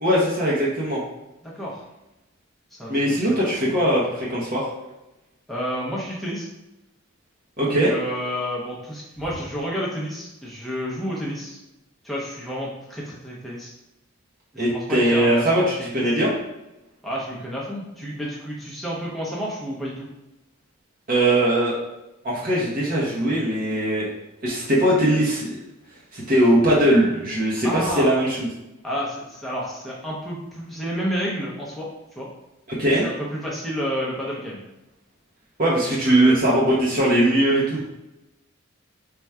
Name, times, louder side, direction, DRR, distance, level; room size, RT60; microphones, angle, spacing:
voice 1, 0.0-1.0 2.9-4.7 7.6-7.9 14.6-16.3 21.1-21.8 22.2-24.1 24.4-25.5 26.1-28.5 32.7-33.0 35.6-37.8, right 1 dB, 40° right, -6 dB, 0.7 m, -20 dB
voice 2, 1.4-1.8 2.7-3.4 5.5-6.5 7.7-11.6 12.0-13.7 14.5-16.0 17.0-20.1 27.6-28.1 28.8-31.9 32.2-32.3 33.0-34.6 36.0-36.4, equal, ahead, -6 dB, 0.6 m, -30 dB
3.5 x 2.2 x 4.2 m, 0.96 s
head